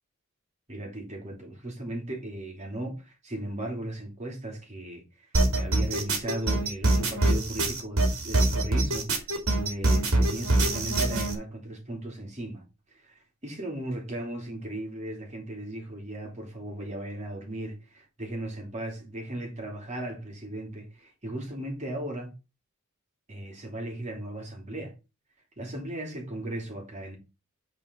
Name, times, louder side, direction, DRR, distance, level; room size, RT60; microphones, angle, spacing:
voice 1, 0.7-5.3 5.5-9.3 9.5-12.6 12.9-22.3 23.3-24.9 25.6-27.2, right 1 dB, 35° right, 3.0 m, -37 dB
sound 1, 5.3-11.3, right 2 dB, 75° right, 2.6 m, -24 dB
9.0 x 4.5 x 4.5 m
head